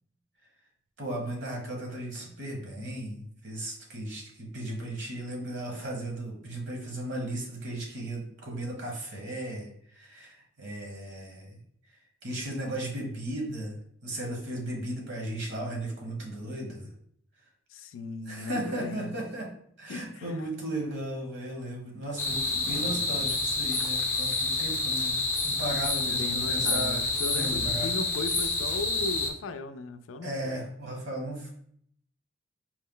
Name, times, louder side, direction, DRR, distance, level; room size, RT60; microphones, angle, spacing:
voice 1, 1.0-11.6 12.2-13.8 14.0-16.9 18.3-19.5 19.8-27.9 30.2-31.5, right 1 dB, 65° right, 1.2 m, -36 dB
voice 2, 17.7-19.1 19.9-20.5 22.8-23.2 26.1-30.6, left 3 dB, 90° left, 0.4 m, -37 dB
sound 1, 22.2-29.3, left 3 dB, 15° left, 0.5 m, -28 dB
4.5 x 2.1 x 3.7 m
head